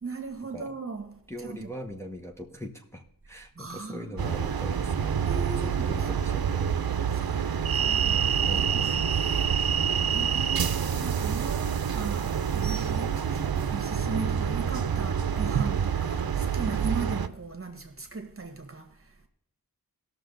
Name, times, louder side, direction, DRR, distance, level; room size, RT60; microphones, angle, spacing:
voice 1, 0.0-1.8 3.5-4.8 5.2-6.7 7.1-9.9 10.1-13.4 13.6-19.3, right 4 dB, 35° right, 1.6 m, -38 dB
voice 2, 1.3-5.2 5.8-6.8 8.5-8.9 9.8-10.2, equal, 5° left, 1.1 m, -41 dB
sound 1, 4.2-17.3, right 7 dB, 75° right, 0.7 m, -27 dB
17.5 x 6.6 x 3.9 m
wide cardioid pair, 65°, 36 cm